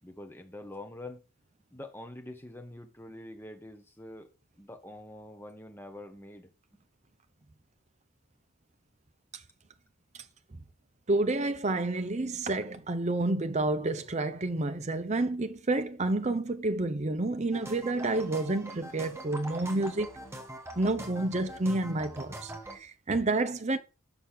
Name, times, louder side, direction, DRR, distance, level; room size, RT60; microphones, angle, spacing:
voice 1, 0.0-1.2 1.7-4.3 4.6-6.8, left 1 dB, 10° left, 1.1 m, -45 dB
voice 2, 11.1-20.2 20.8-23.8, right 2 dB, 30° right, 0.6 m, -29 dB
sound 1, 17.5-22.8, right 1 dB, 10° right, 1.1 m, -43 dB
5.7 x 5.5 x 6.5 m
head